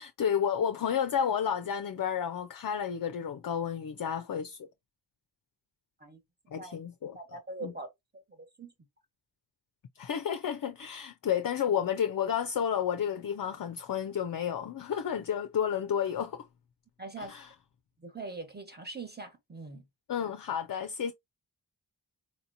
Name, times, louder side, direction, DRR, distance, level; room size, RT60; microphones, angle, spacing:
voice 1, 0.0-4.7 6.5-7.2 7.6-7.7 10.0-16.5 17.2-17.5 20.1-21.1, left 8 dB, 55° left, 0.5 m, -31 dB
voice 2, 7.1-8.7 17.0-17.3 18.0-19.8, right 3 dB, 25° right, 1.2 m, -42 dB
4.3 x 2.8 x 2.5 m
wide cardioid pair, 55°, 43 cm